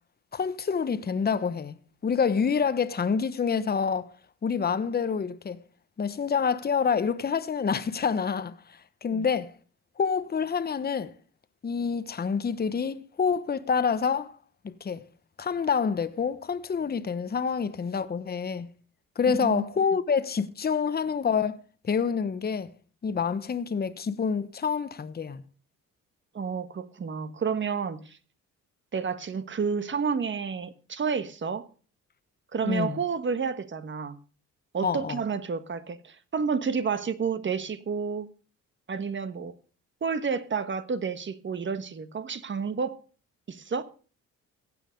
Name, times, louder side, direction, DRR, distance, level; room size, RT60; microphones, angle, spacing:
voice 1, 0.3-1.7 2.0-4.1 4.4-5.6 6.0-9.5 10.0-11.1 11.6-14.4 14.6-15.0 15.4-18.7 19.2-21.6 21.8-22.7 23.0-25.4 32.6-33.0 34.8-35.2, left 6 dB, 30° left, 1.0 m, -27 dB
voice 2, 19.3-19.6 26.3-28.2 28.9-31.7 32.5-34.2 34.7-38.3 38.9-39.5 40.0-43.0 43.5-43.8, right 5 dB, 40° right, 1.4 m, -30 dB
15.5 x 9.1 x 5.2 m
cardioid pair, 90°, 30 cm